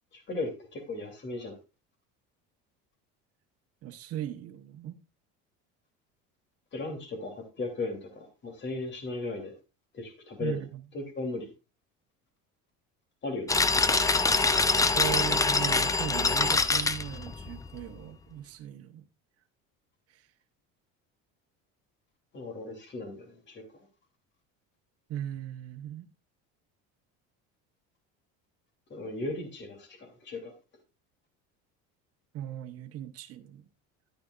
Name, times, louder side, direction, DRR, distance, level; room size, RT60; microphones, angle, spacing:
voice 1, 0.1-1.6 6.7-9.5 9.9-10.6 10.9-11.5 13.2-13.6 14.9-15.4 22.3-23.6 28.9-30.5, left 2 dB, 35° left, 2.9 m, -36 dB
voice 2, 3.8-5.0 10.4-10.8 14.9-19.1 20.1-20.2 25.1-26.1 32.3-33.6, right 11 dB, 50° right, 1.1 m, -38 dB
sound 1, 13.5-17.8, left 3 dB, 10° left, 0.5 m, -25 dB
10.5 x 9.5 x 2.4 m
cardioid pair, 120°, 31 cm